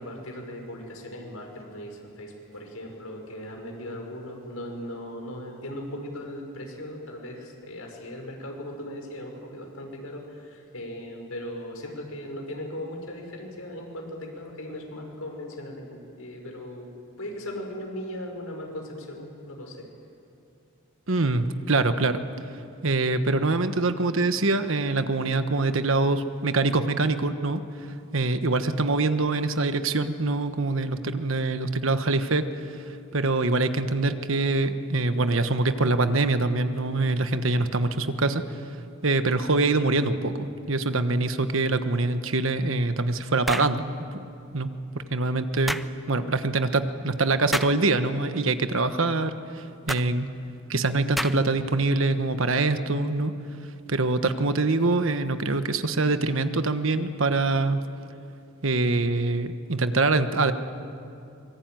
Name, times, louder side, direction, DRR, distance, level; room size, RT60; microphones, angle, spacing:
voice 1, 0.0-16.9 17.2-19.9, left 1 dB, 80° left, 2 dB, 5.5 m, -38 dB
voice 2, 21.1-22.2 22.8-27.6 28.1-32.8 33.1-38.4 39.0-40.3 40.7-43.8 44.1-44.2 44.5-44.7 45.1-45.8 46.1-50.3 50.7-53.3 53.9-57.8 58.6-60.5, right 3 dB, 65° right, 10 dB, 1.3 m, -24 dB
sound 1, 43.4-43.8 45.7-45.9 47.5-47.8 49.9-50.1 51.2-51.6, equal, ahead, 0.6 m, -29 dB
24.5 x 23.0 x 9.2 m, 2.6 s
head